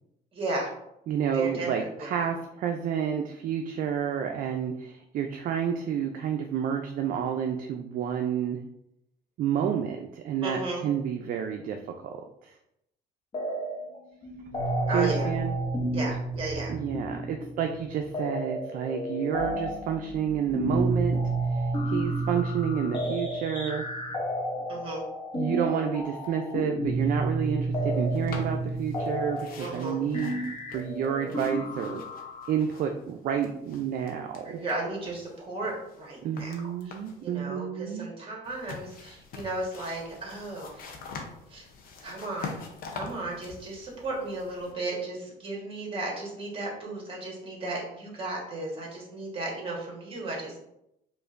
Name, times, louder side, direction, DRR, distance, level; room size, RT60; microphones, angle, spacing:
voice 1, 0.3-0.7 1.3-2.3 10.4-10.9 14.9-15.3 15.9-16.7 24.7-25.0 29.6-30.0 34.4-36.5 36.8-36.9 37.2-41.0 41.5-41.7 42.0-42.6 42.9-50.6, right 2 dB, 30° right, -2 dB, 1.4 m, -34 dB
voice 2, 1.1-8.6 9.4-12.5 14.9-15.6 16.7-21.2 21.5-23.8 25.3-30.4 30.7-32.0 32.5-34.6 36.2-38.1, right 8 dB, 55° right, 4 dB, 0.4 m, -30 dB
sound 1, 13.3-14.0 14.2-32.5, right 1 dB, 30° left, 0.7 m, -31 dB
sound 2, 28.1-29.1 29.3-33.1 33.4-34.7 35.1-37.3 38.4-44.7, left 4 dB, 60° left, 0.7 m, -44 dB
4.9 x 2.5 x 2.5 m, 0.80 s
cardioid pair, 110°, 17 cm